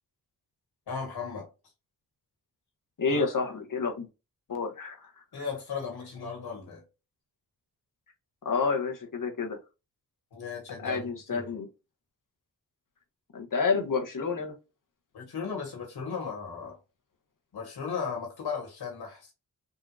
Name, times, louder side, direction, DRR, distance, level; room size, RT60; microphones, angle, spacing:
voice 1, 0.9-1.5 3.1-3.3 5.3-6.8 10.3-11.4 15.1-16.8 17.5-19.3, left 5 dB, 90° left, 1.6 m, -36 dB
voice 2, 3.0-4.1 4.5-5.1 8.4-9.6 10.8-11.7 13.3-14.5, left 4 dB, 55° left, 1.2 m, -29 dB
3.8 x 2.8 x 2.4 m
cardioid pair, 50°, 38 cm